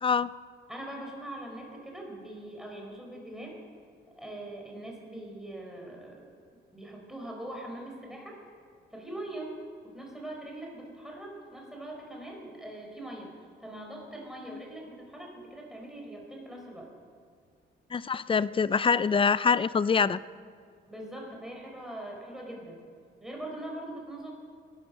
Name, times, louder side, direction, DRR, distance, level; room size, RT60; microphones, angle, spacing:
voice 1, 0.7-3.6 4.2-6.3 6.7-8.4 8.9-9.6 9.9-13.3 13.6-16.9 20.9-22.8 23.2-24.3, right 1 dB, ahead, 0 dB, 4.8 m, -42 dB
voice 2, 17.9-20.2, left 5 dB, 25° left, 17 dB, 0.4 m, -25 dB
18.5 x 11.5 x 6.4 m, 2.2 s
cardioid pair, 90°, 20 cm